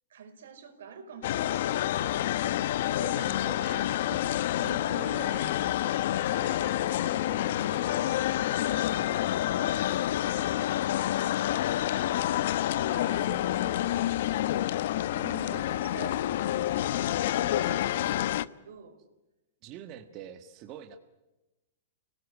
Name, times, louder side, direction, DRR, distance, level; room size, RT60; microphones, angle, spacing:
voice 1, 0.1-2.2 2.9-3.4 4.6-5.3 11.8-12.5 12.9-13.3 15.1-19.0, right 4 dB, 80° right, 8 dB, 5.1 m, -47 dB
sound 1, 1.2-18.4, left 13 dB, 60° left, 0.8 m, -28 dB
voice 2, 2.9-11.5 12.9-14.1 19.6-21.0, right 10 dB, 35° right, 7 dB, 1.6 m, -48 dB
29.5 x 18.0 x 10.0 m, 1.0 s
hypercardioid pair, 150°, 0 cm